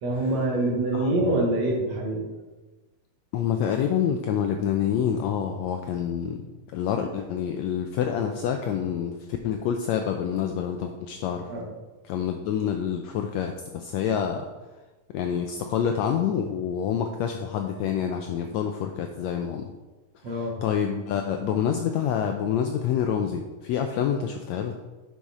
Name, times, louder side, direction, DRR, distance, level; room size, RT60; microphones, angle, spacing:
voice 1, 0.0-2.2 11.5-11.7 20.2-20.6, right 1 dB, 60° right, -2 dB, 2.5 m, -25 dB
voice 2, 0.9-1.4 3.3-6.4 6.7-9.1 9.4-11.5 12.1-14.5 15.1-19.7 20.3-24.7, left 8 dB, 90° left, 5 dB, 1.5 m, -27 dB
8.3 x 6.2 x 4.2 m, 1.2 s
omnidirectional pair, 3.7 m